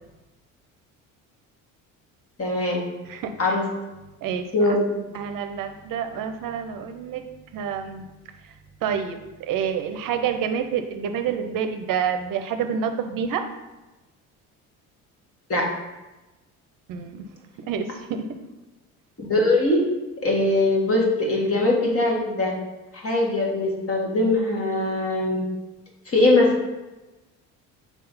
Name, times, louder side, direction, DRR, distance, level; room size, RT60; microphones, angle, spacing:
voice 1, 2.4-2.8 3.4-3.7 4.5-4.8 15.5-15.7 19.2-19.8 20.2-22.5 22.9-25.4 26.1-26.5, left 2 dB, 35° left, -1 dB, 2.0 m, -21 dB
voice 2, 3.0-3.6 4.2-4.5 5.1-7.2 7.5-8.0 8.8-13.4 16.9-17.3 17.7-18.3, right 7 dB, 60° right, 7 dB, 0.7 m, -28 dB
4.6 x 3.8 x 5.6 m, 1.1 s
supercardioid pair, 70°, 38 cm